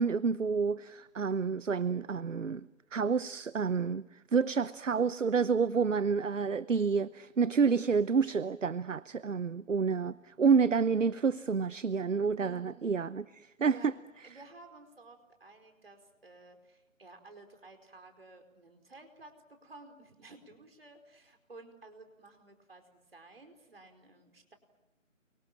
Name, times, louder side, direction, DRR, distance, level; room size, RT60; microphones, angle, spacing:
voice 1, 0.0-2.6 2.9-13.9, right 5 dB, 70° right, 0.9 m, -29 dB
voice 2, 12.4-12.9 13.6-13.9 14.2-24.6, right 3 dB, 50° right, 4.8 m, -54 dB
29.0 x 24.5 x 7.6 m
figure-of-eight pair, 170°, 39 cm